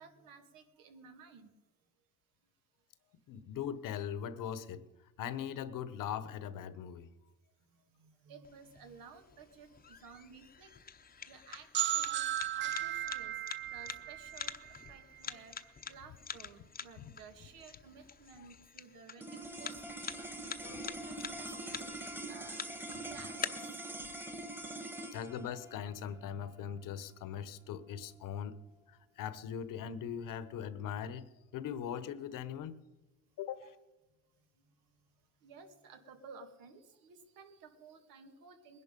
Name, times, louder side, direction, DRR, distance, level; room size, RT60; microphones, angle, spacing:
voice 1, 0.0-1.5 7.9-10.7 11.3-13.4 13.7-15.5 15.9-20.2 20.5-22.7 23.0-23.8 33.6-33.7 35.4-38.8, right 5 dB, 90° right, 6 dB, 2.2 m, -55 dB
voice 2, 3.3-4.8 5.2-7.1 17.0-17.1 18.4-18.5 20.6-20.8 25.1-28.6 28.9-32.8 33.4-33.7, left 8 dB, 75° left, 14 dB, 1.2 m, -40 dB
sound 1, 8.4-23.4, left 6 dB, 25° left, 0.8 m, -47 dB
sound 2, 11.7-15.4, right 13 dB, 35° right, 0.4 m, -36 dB
sound 3, 19.2-29.6, right 1 dB, 5° right, 1.4 m, -45 dB
20.5 x 11.0 x 5.3 m, 1.0 s
cardioid pair, 115°, 33 cm